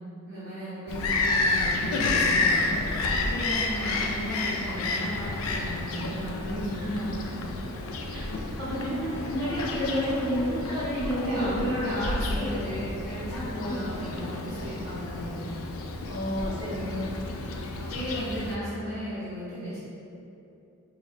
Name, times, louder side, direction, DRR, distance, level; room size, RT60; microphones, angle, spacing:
voice 1, 0.3-2.7 3.1-7.2 11.2-15.5 17.7-19.8, equal, 45° right, -13 dB, 0.9 m, -35 dB
Bird vocalization bird call bird song, 0.9-18.6, left 2 dB, 75° left, 0.4 m, -30 dB
voice 2, 8.6-12.0 12.3-12.5 13.4-13.7 16.1-17.1, equal, 25° right, -12 dB, 1.3 m, -30 dB
4.8 x 2.4 x 3.1 m, 2.8 s
head